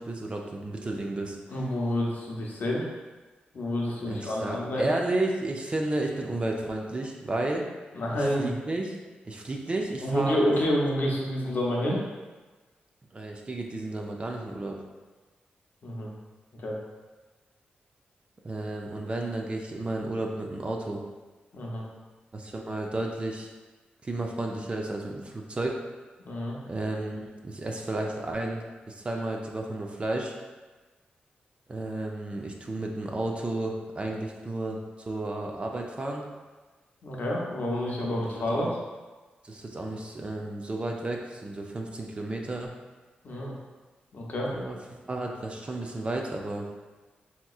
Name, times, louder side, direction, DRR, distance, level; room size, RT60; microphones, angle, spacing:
voice 1, 0.0-1.4 4.0-7.7 8.1-9.0 9.2-10.4 13.1-14.8 18.4-21.0 22.3-23.5 24.0-25.8 26.7-30.3 31.7-36.2 38.1-38.7 39.4-42.7 44.5-44.8 45.1-46.7, right 2 dB, 35° right, 1 dB, 0.4 m, -32 dB
voice 2, 1.5-2.8 3.5-4.9 7.9-8.5 10.0-12.0 15.8-16.1 16.6-16.8 21.5-21.8 26.3-26.6 37.0-38.7 43.2-43.6 44.1-44.5, equal, 60° left, -3 dB, 0.7 m, -28 dB
3.5 x 2.9 x 2.3 m, 1.3 s
cardioid pair, 75°, 3 cm